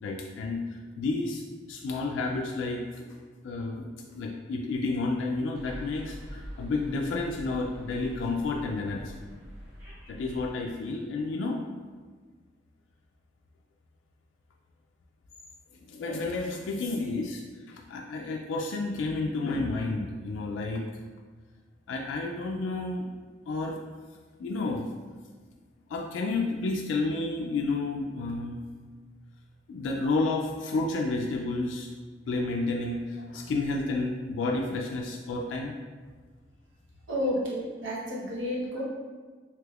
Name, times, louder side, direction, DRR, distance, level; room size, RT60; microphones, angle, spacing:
voice 1, 0.0-0.6 1.0-1.4 1.7-9.1 10.1-11.7 15.8-17.4 17.7-20.8 21.9-23.1 23.5-23.8 24.4-24.8 25.9-28.6 29.7-31.9 32.3-35.7, left 3 dB, 90° left, 1 dB, 0.3 m, -31 dB
sound 1, 5.5-10.5, equal, 15° right, 0.8 m, -44 dB
voice 2, 37.1-38.8, equal, 90° right, -5 dB, 0.9 m, -31 dB
3.3 x 2.9 x 2.3 m, 1.4 s
head